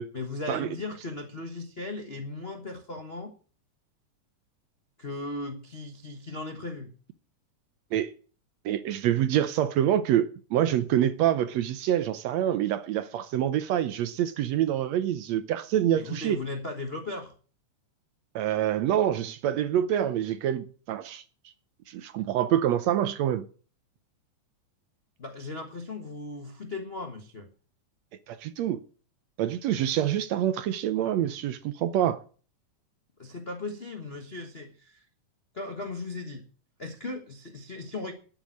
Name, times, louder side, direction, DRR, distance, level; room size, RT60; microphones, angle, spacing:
voice 1, 0.1-3.3 5.0-6.9 15.9-17.3 25.2-27.5 33.2-35.0 35.5-36.4 36.8-38.1, left 2 dB, 70° left, 0.5 m, -37 dB
voice 2, 8.6-16.4 18.3-21.2 21.9-23.4 28.3-28.8 29.4-32.2, right 11 dB, 70° right, 1.8 m, -26 dB
12.0 x 9.0 x 6.4 m
omnidirectional pair, 3.6 m